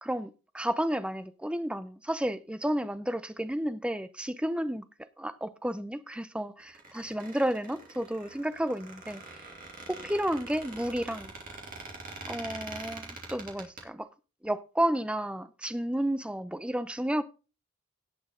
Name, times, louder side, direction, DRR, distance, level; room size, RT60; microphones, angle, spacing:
voice 1, 0.0-4.8 5.2-9.4 9.9-11.3 12.3-14.1 14.4-17.2, right 1 dB, 5° right, 0.5 m, -32 dB
Squeak, 6.6-13.8, right 3 dB, 40° right, 2.8 m, -44 dB
17.5 x 6.2 x 3.8 m
head